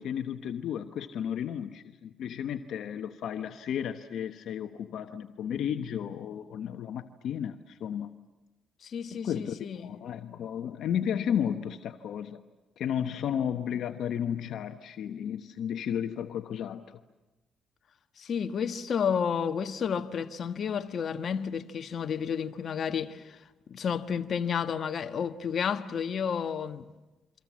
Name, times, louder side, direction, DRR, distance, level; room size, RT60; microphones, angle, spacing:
voice 1, 0.0-8.1 9.1-12.4 12.8-17.0, left 9 dB, 75° left, 1.1 m, -33 dB
voice 2, 8.8-10.0 18.2-23.4 23.7-26.9, left 7 dB, 55° left, 1.3 m, -31 dB
29.0 x 25.0 x 7.5 m
cardioid pair, 90°, 0 cm